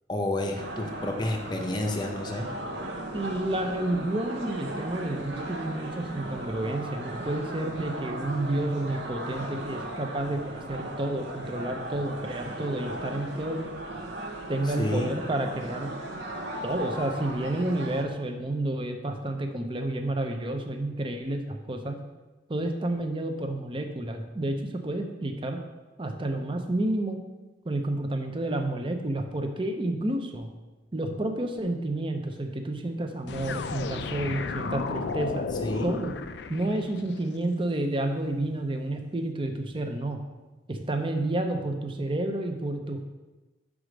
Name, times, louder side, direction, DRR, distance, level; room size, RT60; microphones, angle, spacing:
voice 1, 0.1-2.5 14.8-15.1 35.6-35.9, left 1 dB, 25° left, 2 dB, 0.7 m, -30 dB
sound 1, 0.6-18.0, right 1 dB, 65° right, 0.9 m, -37 dB
voice 2, 3.1-13.6 14.5-15.9 16.6-22.0 22.5-25.6 26.0-27.2 27.6-30.5 30.9-35.5 35.8-36.1 36.5-40.2 40.7-43.0, right 1 dB, 25° right, 5 dB, 0.6 m, -30 dB
sound 2, 33.3-37.2, left 4 dB, 60° left, 0.4 m, -33 dB
4.9 x 4.9 x 6.3 m, 1.1 s
head